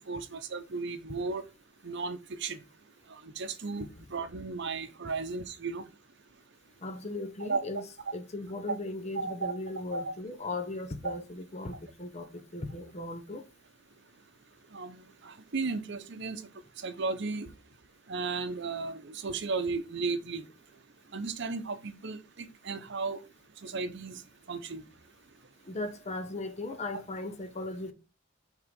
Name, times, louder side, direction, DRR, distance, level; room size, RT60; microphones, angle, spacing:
voice 1, 0.1-1.4 1.8-2.6 3.4-3.9 4.1-5.8 7.4-7.6 9.1-9.5 9.9-10.0 11.0-11.1 14.7-16.4 16.8-17.5 18.1-20.4 21.1-23.2 23.6-24.2 24.5-24.8, right 4 dB, 60° right, 0.7 m, -34 dB
voice 2, 6.8-7.9 8.1-13.4 25.6-27.9, left 2 dB, 35° left, 0.8 m, -37 dB
6.0 x 3.7 x 5.2 m
head